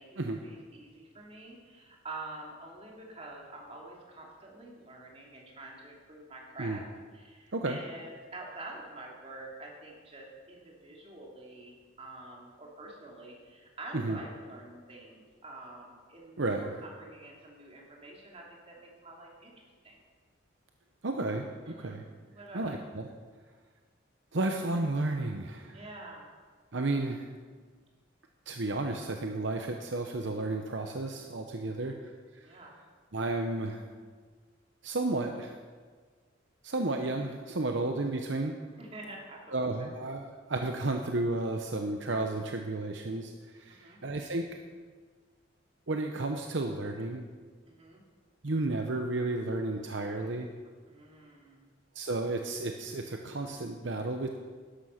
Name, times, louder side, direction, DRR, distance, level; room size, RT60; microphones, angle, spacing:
voice 1, 0.0-6.8 7.1-19.5 19.8-20.0 21.6-22.0 22.3-22.8 25.7-26.3 31.7-32.0 32.4-32.7 38.8-39.9 43.7-44.0 47.7-48.0 50.9-51.7, right 2 dB, 30° right, -2 dB, 2.7 m, -47 dB
voice 2, 16.4-16.8 21.0-22.0 22.5-23.1 24.3-25.8 26.7-27.3 28.5-32.0 32.3-32.6 33.1-33.8 34.8-35.5 36.6-38.5 39.5-44.5 45.9-47.3 48.4-50.5 51.9-54.3, right 2 dB, 65° right, 4 dB, 0.8 m, -32 dB
12.5 x 11.5 x 5.7 m, 1.5 s
head